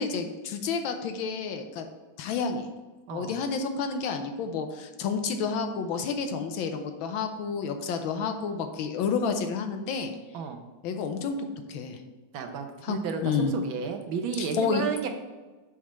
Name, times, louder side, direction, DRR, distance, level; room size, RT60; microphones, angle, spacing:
voice 1, 0.0-1.9 2.2-2.7 3.1-10.1 10.8-12.0 12.8-13.5 14.4-14.8, left 5 dB, 75° left, 6 dB, 1.5 m, -30 dB
voice 2, 3.1-3.4 10.3-10.6 12.3-15.1, right 6 dB, 75° right, 5 dB, 1.5 m, -32 dB
7.3 x 3.6 x 6.1 m, 1.2 s
omnidirectional pair, 2.3 m